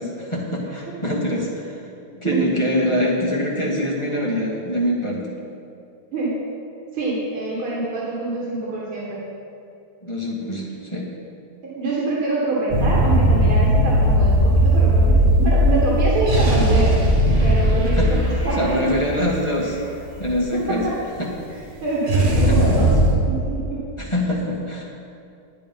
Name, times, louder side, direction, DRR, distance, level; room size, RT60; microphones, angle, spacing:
voice 1, 0.0-1.8 2.1-5.3 10.0-11.1 17.9-18.2 18.6-19.8 20.2-20.9 21.2-21.3 22.4-22.9 24.0-24.8, left 1 dB, 15° left, -4 dB, 1.6 m, -24 dB
voice 2, 6.9-9.3 11.6-17.0 17.4-18.9 20.5-20.9 21.8-22.9 23.3-23.8, right 3 dB, 80° right, -5 dB, 2.6 m, -25 dB
sound 1, 12.7-20.5 22.1-23.2, equal, 30° right, 1.4 m, -17 dB
10.5 x 9.8 x 5.3 m, 2.5 s
omnidirectional pair, 2.3 m